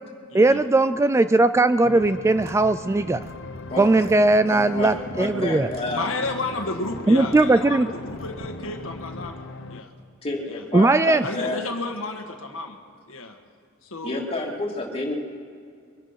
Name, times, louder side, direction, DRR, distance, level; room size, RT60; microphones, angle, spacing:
voice 1, 0.3-3.2 3.8-5.7 7.1-7.9 10.7-11.2, right 2 dB, 15° right, 12 dB, 0.3 m, -18 dB
sound 1, 1.8-9.8, left 3 dB, 65° left, 0.8 m, -40 dB
sound 2, 2.0-9.3, equal, 50° right, 1.4 m, -45 dB
sound 3, 3.3-9.7, equal, 45° left, 2.0 m, -40 dB
voice 2, 3.7-4.0 4.5-6.0 10.2-11.6 14.0-15.2, left 2 dB, 30° left, -2 dB, 2.7 m, -29 dB
voice 3, 5.9-9.3 9.7-9.9 10.4-10.6 11.2-12.8 13.1-13.4 13.8-14.4, left 3 dB, 85° left, 4 dB, 1.5 m, -32 dB
23.5 x 10.0 x 5.7 m, 2.3 s
head